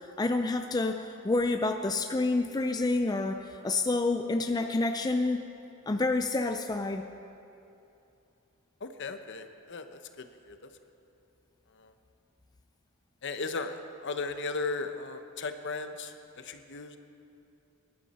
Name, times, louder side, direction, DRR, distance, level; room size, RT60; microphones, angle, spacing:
voice 1, 0.2-5.4 5.9-7.0, left 2 dB, 20° left, 6 dB, 0.4 m, -28 dB
voice 2, 8.8-10.6 11.8-11.9 13.2-13.8 14.0-16.1 16.4-17.0, left 3 dB, 55° left, 8 dB, 0.9 m, -36 dB
22.0 x 11.5 x 4.2 m, 2.8 s
head